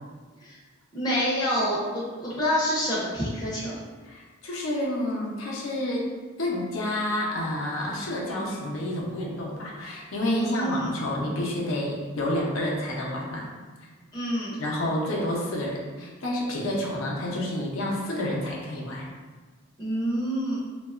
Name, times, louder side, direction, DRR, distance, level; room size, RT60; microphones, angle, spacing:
voice 1, 0.9-3.8 10.2-10.9 14.1-14.6 19.8-20.7, equal, 20° left, -8 dB, 0.5 m, -27 dB
voice 2, 4.0-6.1 6.4-13.4 14.6-19.1, left 1 dB, 80° left, -3 dB, 0.5 m, -29 dB
2.8 x 2.2 x 2.3 m, 1.4 s
head